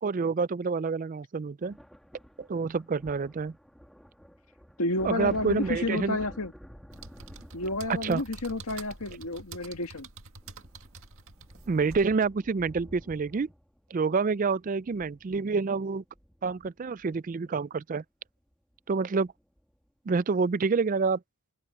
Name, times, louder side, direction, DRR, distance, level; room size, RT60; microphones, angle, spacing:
voice 1, 0.0-1.8 2.4-3.5 5.0-6.2 8.0-8.2 11.7-13.5 13.9-16.0 16.4-18.0 18.9-19.3 20.1-21.2, right 4 dB, 35° right, 0.4 m, -28 dB
sound 1, 1.6-17.3 18.5-18.8 19.0-19.7, equal, ahead, 2.2 m, -51 dB
voice 2, 4.8-6.5 7.5-10.1, left 2 dB, 80° left, 1.9 m, -30 dB
sound 2, 6.9-12.1, right 4 dB, 70° right, 2.0 m, -47 dB
open air
head